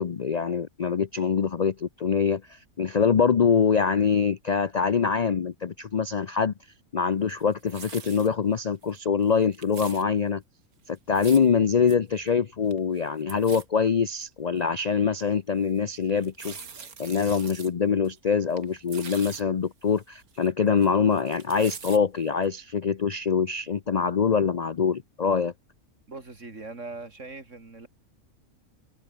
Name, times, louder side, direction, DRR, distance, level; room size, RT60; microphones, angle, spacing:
voice 1, 0.0-6.5 6.9-10.4 10.9-16.5 17.0-25.5, left 6 dB, 45° left, 0.5 m, -24 dB
sound 1, 7.3-8.3 8.8-9.0 9.2-10.0 11.0-11.5 11.9-12.0 12.3-12.4 12.6-13.0 13.3-13.6 14.2-14.3 14.8-14.9 16.1-17.7 18.0-18.2 18.5-19.4 19.9-20.9 21.1-22.0 22.4-22.5, right 6 dB, 90° right, 2.5 m, -43 dB
voice 2, 26.1-27.9, right 3 dB, 55° right, 3.8 m, -40 dB
omnidirectional pair, 1.5 m